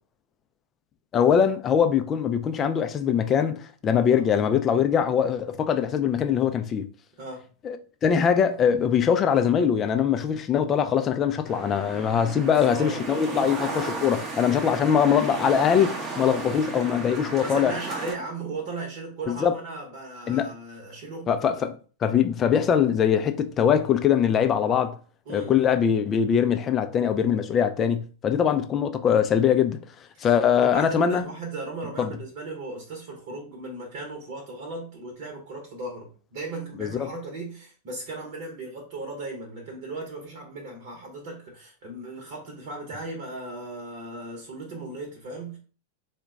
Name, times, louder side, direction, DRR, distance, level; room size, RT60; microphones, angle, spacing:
voice 1, 1.1-6.9 7.6-17.8 19.3-19.5 20.3-20.5 21.3-25.0 25.3-29.8 30.2-31.2 32.0-32.1 36.8-37.1, left 8 dB, 25° left, 0.4 m, -22 dB
sound 1, 11.5-18.1, right 3 dB, 25° right, 0.7 m, -34 dB
voice 2, 12.4-13.5 14.6-14.8 17.4-21.3 25.3-25.7 28.4-28.6 30.1-45.6, right 2 dB, 50° right, 0.9 m, -37 dB
3.8 x 2.2 x 3.5 m
figure-of-eight pair, 90°, 0 cm